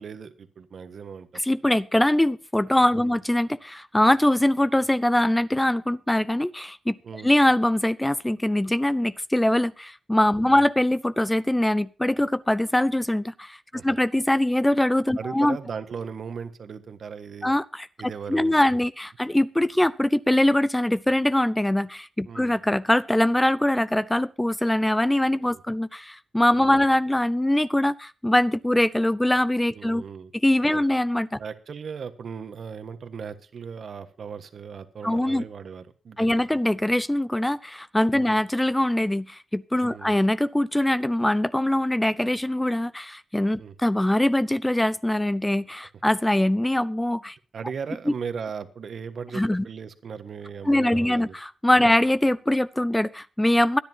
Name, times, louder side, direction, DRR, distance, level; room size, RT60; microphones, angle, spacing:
voice 1, 0.0-1.4 2.9-3.2 7.0-7.3 10.4-10.6 13.7-14.0 15.2-17.5 18.0-18.6 22.2-22.6 25.5-25.6 26.6-26.8 29.7-30.3 30.7-30.8 31.4-36.6 38.1-38.4 39.9-40.2 43.6-43.7 47.5-51.3 51.8-51.9, right 6 dB, 65° right, 10 dB, 1.5 m, -37 dB
voice 2, 1.4-7.0 7.2-13.6 13.8-15.6 17.4-17.9 18.3-30.0 30.4-31.4 35.0-35.4 36.2-47.4 49.3-49.6 50.7-53.8, left 1 dB, 10° left, 16 dB, 0.5 m, -22 dB
23.5 x 10.5 x 2.9 m, 0.34 s
wide cardioid pair, 100°, 0 cm